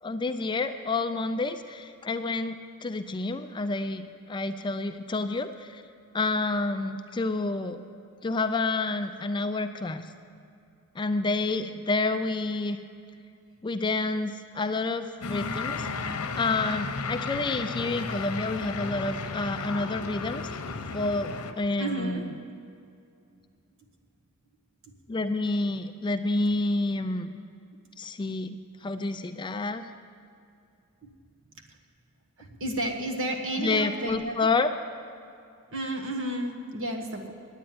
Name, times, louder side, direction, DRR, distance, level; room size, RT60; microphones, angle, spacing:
voice 1, 0.0-5.8 6.1-7.8 8.2-10.1 11.0-12.8 13.6-15.9 16.4-20.6 20.9-22.3 25.1-27.3 28.0-28.6 28.8-29.8 33.6-34.7, left 3 dB, 20° left, 8 dB, 0.4 m, -29 dB
sound 1, 15.2-21.5, left 4 dB, 90° left, 0.8 m, -34 dB
voice 2, 21.8-22.2 24.9-25.0 31.0-31.1 32.4-34.5 35.7-37.3, right 1 dB, 60° right, 2 dB, 1.4 m, -32 dB
9.6 x 9.1 x 9.3 m, 2.5 s
head